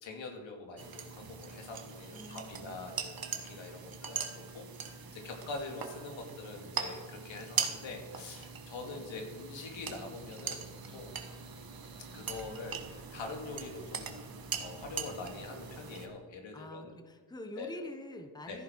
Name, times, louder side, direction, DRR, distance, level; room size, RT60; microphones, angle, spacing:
voice 1, 0.0-4.6 5.1-10.6 10.9-11.1 12.1-16.9 17.6-17.7 18.5-18.6, left 3 dB, 80° left, 2 dB, 2.6 m, -44 dB
sound 1, 0.8-16.1, right 6 dB, 50° right, 1.6 m, -41 dB
voice 2, 2.1-2.7 16.5-18.6, left 1 dB, 10° left, 6 dB, 1.1 m, -45 dB
14.5 x 10.5 x 4.7 m, 1.3 s
cardioid pair, 100°, 45 cm